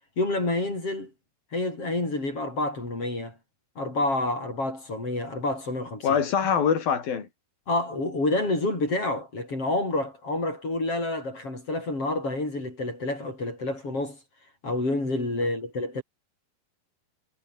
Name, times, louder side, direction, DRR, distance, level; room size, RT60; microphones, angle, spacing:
voice 1, 0.2-1.1 1.5-3.4 3.8-6.2 7.7-14.2 14.6-16.0, left 2 dB, 35° left, 8.7 m, -28 dB
voice 2, 6.0-7.3, left 7 dB, 60° left, 5.7 m, -24 dB
omnidirectional pair, 4.6 m